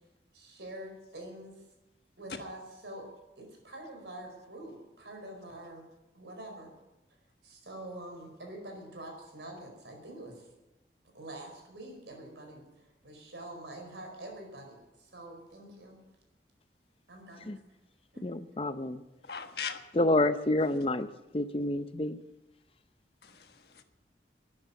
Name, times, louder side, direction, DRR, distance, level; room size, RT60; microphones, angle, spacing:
voice 1, 0.3-1.5 2.2-3.1 3.4-5.8 6.1-6.7 7.4-10.5 11.1-16.0 17.1-17.5 18.1-18.3, right 1 dB, 85° right, 2 dB, 4.8 m, -46 dB
voice 2, 18.2-19.0 19.9-21.1 21.3-22.2, left 2 dB, 30° left, 11 dB, 0.6 m, -28 dB
voice 3, 19.2-19.8 23.2-23.8, left 6 dB, 65° left, 6 dB, 1.4 m, -39 dB
13.0 x 9.6 x 9.0 m, 0.99 s
head